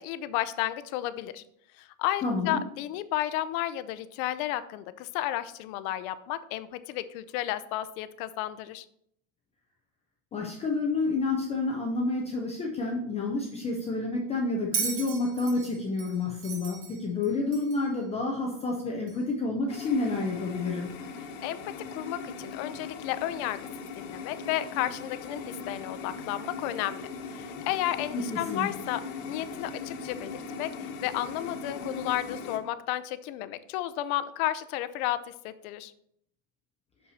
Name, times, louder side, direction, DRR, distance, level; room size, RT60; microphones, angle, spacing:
voice 1, 0.0-1.4 1.8-8.9 21.4-23.7 24.0-29.0 29.3-30.7 31.0-35.9, left 13 dB, 80° left, 13 dB, 0.7 m, -32 dB
voice 2, 2.2-2.6 10.3-20.9 28.1-28.7, left 3 dB, 15° left, -1 dB, 0.3 m, -29 dB
Bell, 14.7-17.9 19.1-19.2, right 6 dB, 70° right, 1.8 m, -35 dB
sound 1, 19.7-32.6, left 4 dB, 65° left, 1.2 m, -40 dB
6.5 x 5.5 x 4.1 m, 0.71 s
cardioid pair, 175°, 42 cm